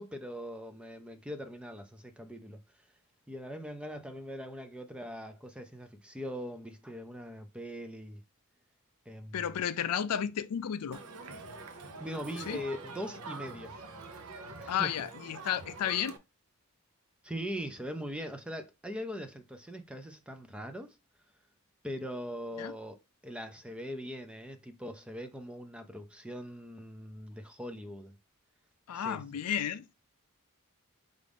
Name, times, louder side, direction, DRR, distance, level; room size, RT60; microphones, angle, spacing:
voice 1, 0.0-2.6 3.3-8.2 9.1-9.5 12.0-13.7 14.6-15.0 17.2-21.0 21.8-23.0 23.2-28.2 28.9-29.2, equal, 5° right, 0.4 m, -41 dB
voice 2, 9.3-11.0 12.5-12.6 14.7-16.2 22.6-22.7 28.9-29.9, left 9 dB, 85° left, 0.4 m, -32 dB
Crowd, 10.9-16.2, right 3 dB, 80° right, 0.6 m, -45 dB
5.0 x 2.5 x 3.4 m
head